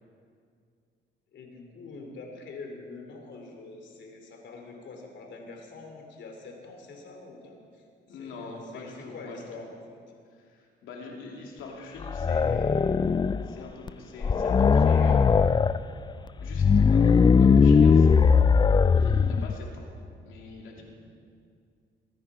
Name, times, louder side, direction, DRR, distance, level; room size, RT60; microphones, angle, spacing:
voice 1, 1.3-7.8 8.1-10.0, left 3 dB, 65° left, 2 dB, 3.0 m, -45 dB
voice 2, 8.1-9.6 10.3-13.0 13.3-15.7 16.4-18.2 18.9-19.9 20.2-20.8, left 3 dB, 90° left, -1 dB, 2.8 m, -44 dB
sound 1, 12.0-13.5 13.9-14.0 14.2-15.8 16.4-19.5, left 5 dB, 25° left, 0.3 m, -20 dB
23.0 x 9.9 x 4.9 m, 2.3 s
cardioid pair, 90°, 20 cm